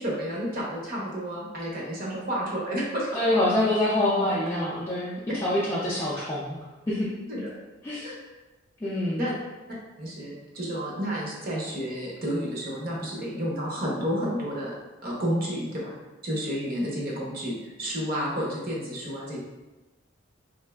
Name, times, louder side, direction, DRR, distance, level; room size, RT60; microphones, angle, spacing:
voice 1, 0.0-3.1 7.3-7.5 8.0-8.2 9.2-9.4 10.0-14.8 15.0-15.9 16.2-19.4, equal, 45° right, -4 dB, 0.6 m, -31 dB
voice 2, 3.1-6.6 6.9-7.1 7.8-8.1 8.8-9.2, left 1 dB, 15° left, -8 dB, 0.3 m, -26 dB
3.1 x 2.5 x 2.2 m, 1.1 s
head